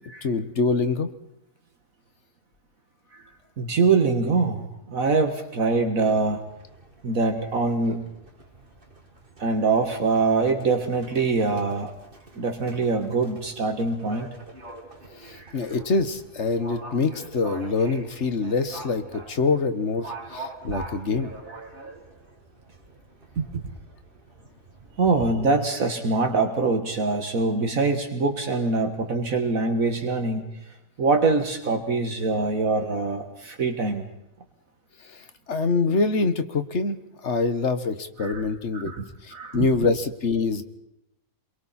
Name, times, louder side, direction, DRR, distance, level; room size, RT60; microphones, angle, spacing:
voice 1, 0.2-1.1 15.2-21.3 35.0-38.9 39.2-40.6, left 4 dB, 50° left, 10 dB, 1.6 m, -25 dB
voice 2, 3.6-6.5 7.0-8.1 9.4-11.9 12.3-14.3 15.3-15.5 20.7-20.8 23.4-23.6 25.0-30.5 31.0-34.0 38.2-38.4 38.7-39.0 39.3-39.7, right 3 dB, 65° right, 5 dB, 2.1 m, -24 dB
Livestock farm animals working animals, 5.9-25.3, right 2 dB, 35° right, 2.9 m, -45 dB
28.5 x 23.0 x 4.3 m, 0.88 s
omnidirectional pair, 1.5 m